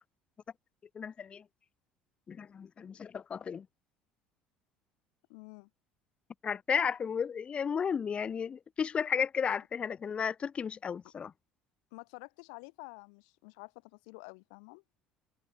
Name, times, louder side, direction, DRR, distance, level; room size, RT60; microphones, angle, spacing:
voice 1, 0.9-1.4 2.3-3.7 6.4-11.3, left 7 dB, 35° left, 0.6 m, -33 dB
voice 2, 5.3-5.7 11.9-14.8, left 36 dB, 70° left, 2.0 m, -49 dB
hypercardioid pair, 65°, 3 cm